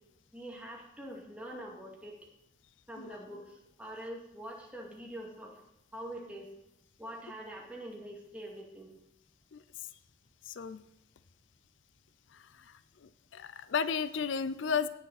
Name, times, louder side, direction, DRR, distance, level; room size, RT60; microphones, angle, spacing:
voice 1, 0.3-2.2 2.9-5.6 5.9-6.5 7.0-8.9, right 1 dB, 5° right, -2 dB, 2.1 m, -44 dB
voice 2, 10.5-10.8 12.3-12.7 13.0-14.9, left 6 dB, 75° left, 14 dB, 0.5 m, -34 dB
17.5 x 6.9 x 4.1 m, 0.84 s
head